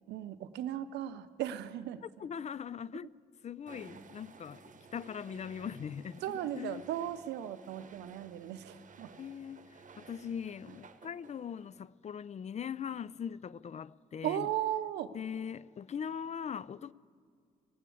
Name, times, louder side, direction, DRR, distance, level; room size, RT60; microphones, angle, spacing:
voice 1, 0.1-2.0 2.9-3.1 6.2-9.2 14.2-15.1, right 11 dB, 80° right, 0.6 m, -37 dB
voice 2, 2.0-3.1 3.4-4.6 4.9-6.8 9.2-14.5 15.1-16.9, left 7 dB, 40° left, 0.4 m, -41 dB
sound 1, 3.7-11.9, right 5 dB, 45° right, 1.0 m, -55 dB
18.0 x 8.3 x 8.5 m
supercardioid pair, 50°, 18 cm